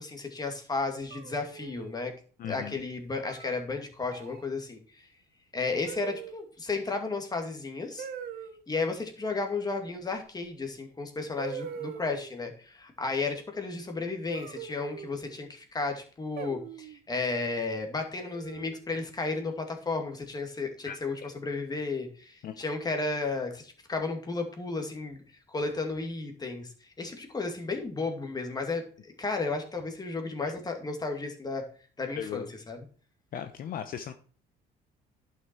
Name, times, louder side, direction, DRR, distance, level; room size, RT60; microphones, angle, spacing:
voice 1, 0.0-2.1 2.5-5.1 5.5-8.1 8.7-25.2 25.5-31.6 32.0-32.8, left 3 dB, 25° left, 4 dB, 2.3 m, -33 dB
sound 1, 1.1-2.0 3.2-3.6 4.1-4.4 5.9-6.5 8.0-8.6 10.5-10.6 11.4-12.4 14.3-15.4 16.4-17.0 18.2-18.8, right 8 dB, 65° right, 1.4 m, -42 dB
voice 2, 2.4-2.8 20.8-21.3 22.4-22.6 32.2-32.5 33.3-34.1, left 9 dB, 55° left, 8 dB, 0.9 m, -37 dB
11.0 x 6.1 x 4.5 m, 0.41 s
cardioid pair, 110°, 17 cm